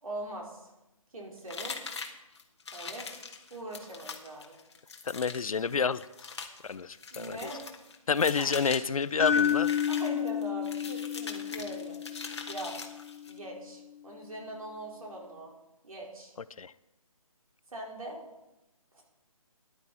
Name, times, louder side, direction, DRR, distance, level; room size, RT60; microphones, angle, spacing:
voice 1, 0.0-0.7 1.1-1.8 2.7-3.1 3.5-4.6 7.1-7.6 8.4-8.5 9.9-12.0 12.5-12.7 13.3-15.5 15.8-16.3 17.7-18.2 18.9-19.0, right 1 dB, 70° right, -1 dB, 4.7 m, -41 dB
sound 1, 1.5-13.4, left 4 dB, 50° left, 1.6 m, -42 dB
voice 2, 5.1-6.0 6.6-7.4 8.1-9.7 16.6-16.7, left 5 dB, 70° left, 17 dB, 0.6 m, -29 dB
sound 2, 9.2-13.3, left 8 dB, 20° left, 0.7 m, -30 dB
14.5 x 11.0 x 4.3 m, 0.94 s
hypercardioid pair, 175°, 18 cm